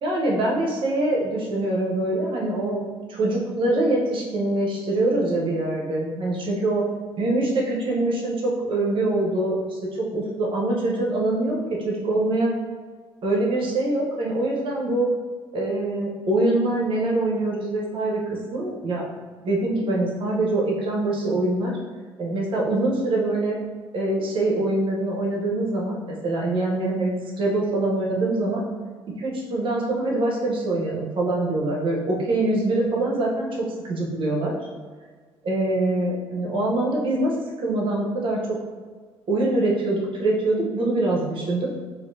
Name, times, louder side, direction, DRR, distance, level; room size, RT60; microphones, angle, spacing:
voice 1, 0.0-2.8 3.1-6.8 7.2-11.6 11.8-12.5 13.2-15.1 15.5-19.0 19.4-21.8 22.2-23.6 23.9-27.1 27.4-28.6 29.2-34.5 35.4-38.6 39.3-41.7, right 2 dB, 55° right, -3 dB, 0.9 m, -24 dB
4.2 x 2.6 x 2.7 m, 1.5 s
cardioid pair, 85°, 10 cm